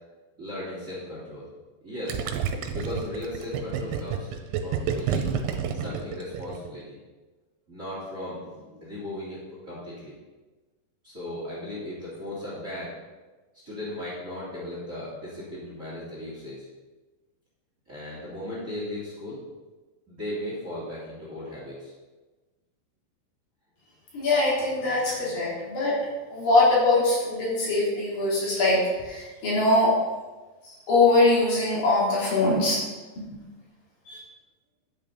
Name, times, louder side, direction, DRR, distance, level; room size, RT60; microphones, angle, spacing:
voice 1, 0.4-1.5 1.8-2.2 2.7-4.3 4.6-5.3 5.7-7.0 7.7-10.1 11.0-12.9 13.6-16.6 17.9-19.4 20.1-21.9, left 1 dB, 20° right, -7 dB, 2.8 m, -36 dB
Gurgling, 2.1-6.8, right 7 dB, 90° right, 2.8 m, -29 dB
voice 2, 24.1-26.0 26.3-29.9 30.9-32.8 33.2-33.3 34.1-34.2, left 2 dB, 60° left, -7 dB, 4.9 m, -22 dB
11.0 x 9.5 x 4.0 m, 1.2 s
omnidirectional pair, 4.7 m